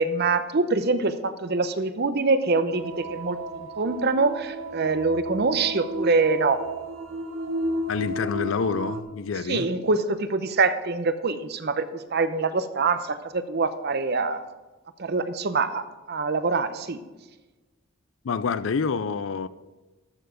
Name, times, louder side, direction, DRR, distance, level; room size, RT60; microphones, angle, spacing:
voice 1, 0.0-6.6 9.5-14.4 15.0-17.0, right 3 dB, 50° right, 0.7 m, -25 dB
sound 1, 2.7-9.0, right 1 dB, 70° right, 1.0 m, -33 dB
voice 2, 7.9-9.7 18.2-19.5, left 5 dB, 65° left, 0.4 m, -27 dB
13.0 x 6.9 x 5.1 m
head